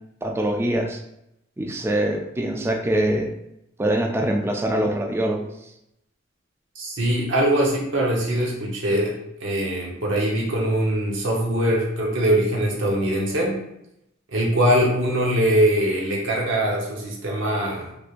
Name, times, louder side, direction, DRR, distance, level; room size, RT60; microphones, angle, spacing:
voice 1, 0.2-1.0 1.6-3.3 3.8-5.5, right 1 dB, 15° right, 3 dB, 0.3 m, -23 dB
voice 2, 6.8-9.1 9.4-13.6 14.3-17.9, right 1 dB, 75° right, -2 dB, 0.9 m, -22 dB
3.4 x 3.0 x 2.4 m, 0.81 s
head